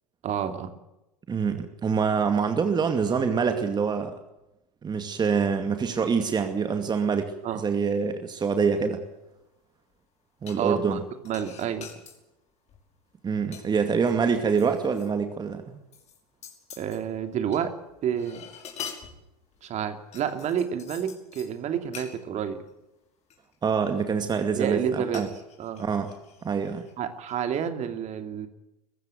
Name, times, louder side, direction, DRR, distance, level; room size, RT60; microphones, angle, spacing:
voice 1, 0.2-0.7 7.4-7.6 10.6-11.0 11.2-11.9 16.8-17.7 18.0-18.4 19.6-22.6 24.5-25.3 25.6-25.8 27.0-28.5, right 8 dB, 35° right, 8 dB, 2.9 m, -29 dB
voice 2, 1.3-4.2 4.8-9.0 10.4-11.0 13.2-15.8 23.6-25.3 25.8-26.1 26.4-26.9, right 6 dB, 20° right, 7 dB, 2.3 m, -25 dB
sound 1, 10.5-10.9 11.2-12.2 12.7-13.0 13.3-15.1 15.4-15.5 15.9-17.6 17.9-19.7 20.1-21.5 21.9-22.1 22.7-22.8 23.3-24.0 25.1-26.9 27.3-27.4, left 7 dB, 35° left, 5.6 m, -45 dB
23.0 x 15.0 x 9.2 m, 0.93 s
hypercardioid pair, 95°, 20 cm